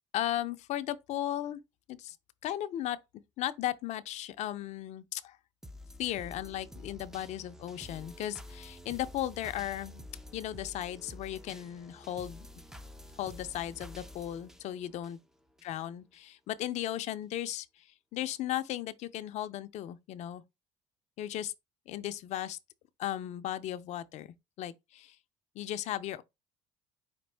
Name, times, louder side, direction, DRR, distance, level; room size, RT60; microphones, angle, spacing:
voice 1, 0.1-1.6 1.9-2.2 2.4-3.0 3.4-5.4 6.0-10.0 10.3-12.5 13.2-15.2 15.6-17.7 18.1-20.4 21.2-21.5 21.9-22.6 23.0-24.3 24.6-25.2 25.6-26.2, left 12 dB, 60° left, 0.5 m, -36 dB
sound 1, 5.6-15.7 16.1-16.2, left 1 dB, 5° right, 0.4 m, -49 dB
5.2 x 2.5 x 3.3 m
supercardioid pair, 90°, 13 cm